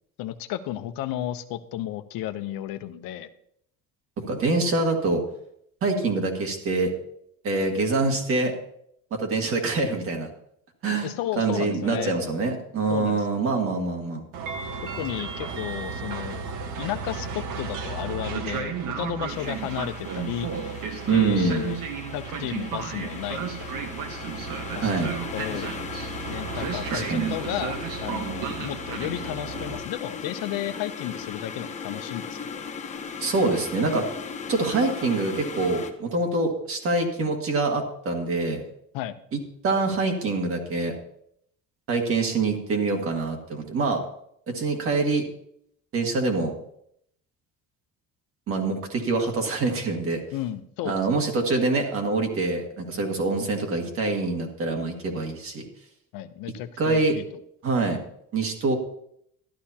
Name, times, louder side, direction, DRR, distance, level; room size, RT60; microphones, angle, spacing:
voice 1, 0.2-3.3 11.0-12.2 12.9-13.3 14.9-16.5 16.8-20.7 21.1-21.8 22.1-24.2 24.8-25.7 26.3-32.7 38.9-39.1 50.3-51.0 56.1-57.2, left 12 dB, 80° left, 9 dB, 0.8 m, -33 dB
voice 2, 4.2-5.2 5.8-6.9 7.4-8.5 9.1-10.3 10.8-11.1 11.4-14.2 21.0-21.7 24.8-25.1 26.9-27.3 33.2-34.0 34.5-38.6 39.3-39.4 39.6-41.0 41.9-44.0 44.5-45.2 45.9-46.5 48.5-50.2 50.8-55.6 56.8-57.1 57.6-58.0 58.3-58.8, right 3 dB, 40° right, 3 dB, 1.8 m, -25 dB
Train, 14.3-29.8, right 6 dB, 65° right, 1.4 m, -33 dB
sound 1, 19.3-35.9, left 5 dB, 20° left, 0.7 m, -38 dB
13.0 x 11.5 x 2.9 m, 0.71 s
cardioid pair, 175°, 34 cm